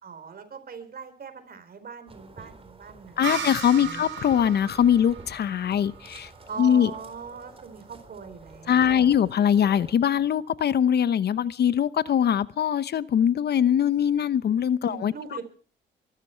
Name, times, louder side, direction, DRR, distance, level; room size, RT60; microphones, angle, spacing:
voice 1, 0.0-4.0 6.5-9.1 14.9-15.4, right 6 dB, 50° right, 10 dB, 4.1 m, -41 dB
sound 1, 2.1-9.9, right 3 dB, 30° right, 4.1 m, -48 dB
voice 2, 3.2-6.3 6.6-6.9 8.7-15.1, left 9 dB, 55° left, 16 dB, 0.8 m, -22 dB
sound 2, 3.2-6.8, right 7 dB, 70° right, 5.4 m, -36 dB
23.0 x 13.5 x 4.5 m, 0.44 s
cardioid pair, 90°, 20 cm